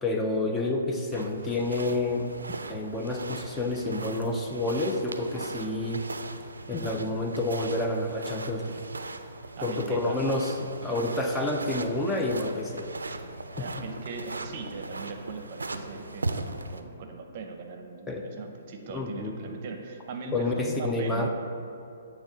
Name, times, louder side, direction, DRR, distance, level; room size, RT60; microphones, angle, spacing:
voice 1, 0.0-2.3 2.7-6.1 6.7-8.8 9.6-12.9 13.6-13.7 18.1-18.3 18.9-19.6 20.3-21.3, left 2 dB, 10° left, 1 dB, 0.4 m, -29 dB
sound 1, 1.1-16.8, right 3 dB, 85° right, 0.3 m, -39 dB
voice 2, 9.6-10.4 13.5-21.3, right 4 dB, 45° right, 4 dB, 0.6 m, -40 dB
8.1 x 3.0 x 3.9 m, 2.6 s
hypercardioid pair, 130°, 0 cm